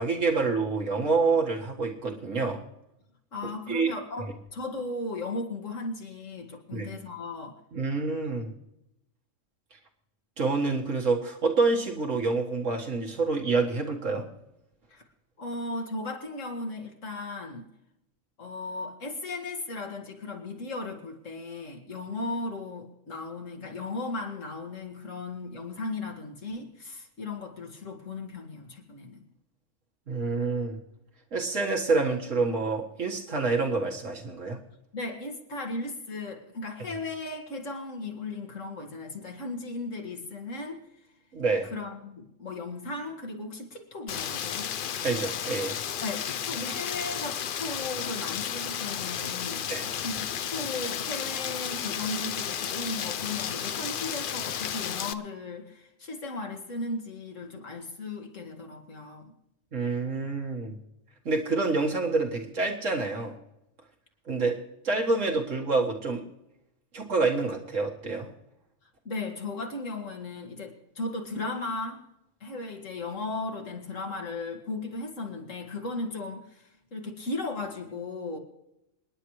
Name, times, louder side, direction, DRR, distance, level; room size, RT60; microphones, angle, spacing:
voice 1, 0.0-2.6 3.7-3.9 6.7-6.9 7.7-8.5 10.4-14.2 30.1-30.8 31.3-34.6 41.3-41.7 45.0-45.8 49.7-49.9 59.7-60.8 61.3-63.4 64.3-64.6 64.8-66.2 66.9-68.3, right 3 dB, 75° right, 1 dB, 2.1 m, -27 dB
voice 2, 3.3-7.6 14.9-15.0 15.4-17.7 18.4-29.2 34.9-40.8 41.7-44.7 46.0-59.3 69.1-72.1 72.4-78.4, left 2 dB, 75° left, 3 dB, 2.2 m, -36 dB
Rain, 44.1-55.1, left 9 dB, 55° left, 0.6 m, -33 dB
27.5 x 10.0 x 3.2 m, 0.87 s
omnidirectional pair, 1.3 m